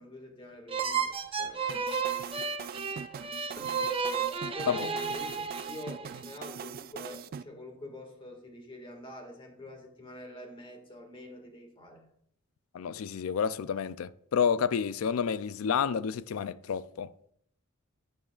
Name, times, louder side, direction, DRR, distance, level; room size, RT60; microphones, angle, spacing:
voice 1, 0.0-1.7 3.5-3.8 4.5-12.1, left 1 dB, 25° left, 1.9 m, -46 dB
sound 1, 0.7-6.2, right 6 dB, 25° right, 0.7 m, -33 dB
sound 2, 1.7-7.4, right 7 dB, 45° right, 0.3 m, -42 dB
voice 2, 12.7-17.1, left 7 dB, 80° left, 0.4 m, -30 dB
11.5 x 9.3 x 2.4 m
head